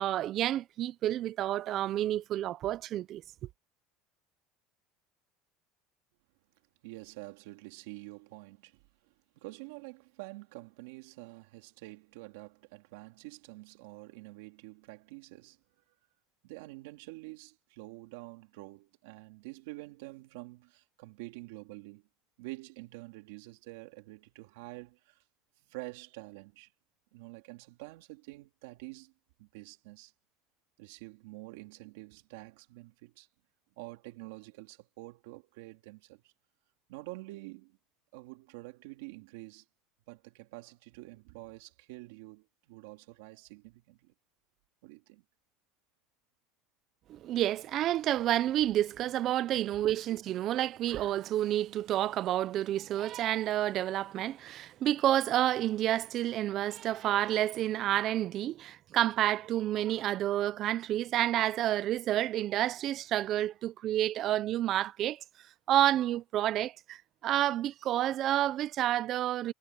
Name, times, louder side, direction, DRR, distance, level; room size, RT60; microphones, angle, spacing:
voice 1, 0.0-3.2 47.1-65.2 65.7-69.5, right 13 dB, 35° right, 0.5 m, -29 dB
voice 2, 6.8-15.6 16.4-22.1 22.4-25.2 25.7-26.7 27.1-29.1 29.4-30.1 30.8-33.3 33.8-36.3 36.9-37.8 38.1-39.6 40.1-44.1 44.8-45.2, right 22 dB, 85° right, 3.0 m, -47 dB
cardioid pair, 170°, 0 cm